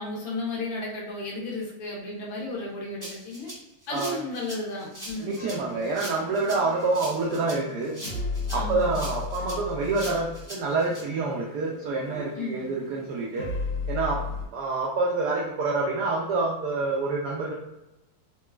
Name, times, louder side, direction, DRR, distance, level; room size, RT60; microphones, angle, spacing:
voice 1, 0.0-3.5 3.9-5.8 8.5-9.0 12.4-12.9, left 2 dB, 70° left, -4 dB, 1.6 m, -34 dB
Rattle (instrument), 3.0-11.0, equal, 15° right, 0.6 m, -41 dB
sound 1, 5.1-14.5, left 4 dB, 85° left, 1.7 m, -36 dB
voice 2, 5.2-7.9 8.5-13.5 13.9-14.2 14.5-17.5, right 3 dB, 85° right, -3 dB, 0.8 m, -27 dB
4.0 x 2.2 x 2.3 m, 0.97 s
omnidirectional pair, 2.3 m